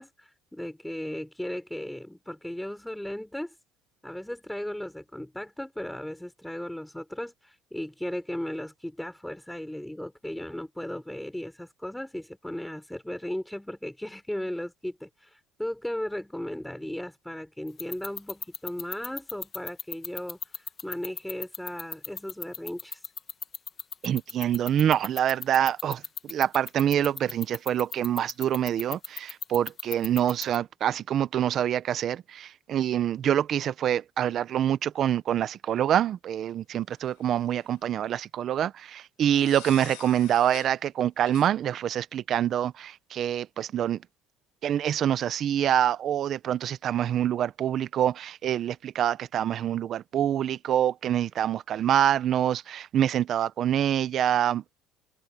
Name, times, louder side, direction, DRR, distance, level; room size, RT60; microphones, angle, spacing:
voice 1, 0.0-3.5 4.0-23.0, left 1 dB, 5° left, 4.2 m, -36 dB
sound 1, 17.7-30.6, left 6 dB, 30° left, 1.6 m, -34 dB
voice 2, 24.0-26.0 26.3-44.0 44.6-54.7, right 10 dB, 40° right, 0.8 m, -26 dB
sound 2, 37.1-37.8 39.3-40.8 41.3-41.5, left 27 dB, 85° left, 5.4 m, -46 dB
cardioid pair, 145°, 0 cm